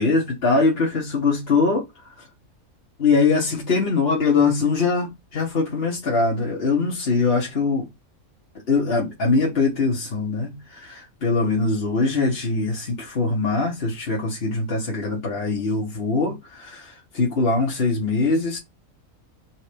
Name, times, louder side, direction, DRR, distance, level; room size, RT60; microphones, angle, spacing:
voice 1, 0.0-2.2 3.0-7.9 8.7-18.6, left 4 dB, 45° left, 1.4 m, -22 dB
4.4 x 4.2 x 5.1 m
omnidirectional pair, 1.5 m